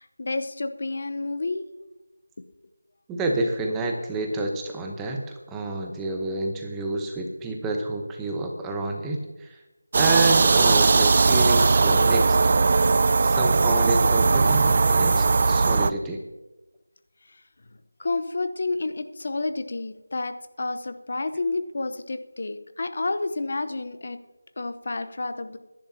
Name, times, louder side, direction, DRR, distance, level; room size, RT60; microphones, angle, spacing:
voice 1, 0.0-1.6 18.0-24.2 24.6-25.6, left 3 dB, 45° left, 10 dB, 0.8 m, -30 dB
voice 2, 3.1-5.2 5.5-9.6 9.9-12.4 13.2-16.2, right 2 dB, 5° right, 2 dB, 0.9 m, -28 dB
sound 1, 9.9-15.9, right 4 dB, 35° right, 0.3 m, -19 dB
25.0 x 10.5 x 2.8 m, 1.1 s
figure-of-eight pair, 170°, 0 cm